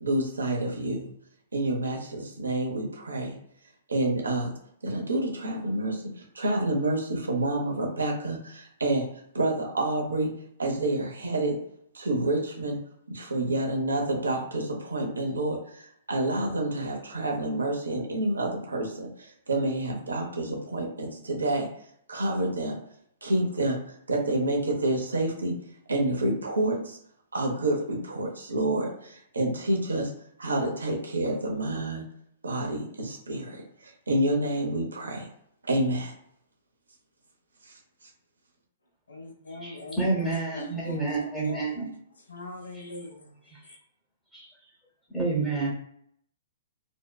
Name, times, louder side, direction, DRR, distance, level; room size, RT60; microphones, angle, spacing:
voice 1, 0.0-1.0 1.5-3.3 3.9-4.5 4.8-9.1 9.3-10.3 10.6-11.6 11.9-12.8 13.1-21.7 22.1-22.8 23.2-23.8 24.1-25.5 25.9-27.0 27.3-30.1 30.4-32.0 32.4-35.3 35.6-36.1, right 1 dB, 90° right, 1 dB, 0.6 m, -28 dB
voice 2, 39.1-41.8 42.3-43.3, left 2 dB, 85° left, 2 dB, 0.6 m, -41 dB
voice 3, 39.6-41.9 43.5-43.8 44.3-44.5 45.1-45.7, right 3 dB, 5° left, -6 dB, 0.7 m, -29 dB
2.6 x 2.1 x 2.2 m, 0.68 s
hypercardioid pair, 125°, 0 cm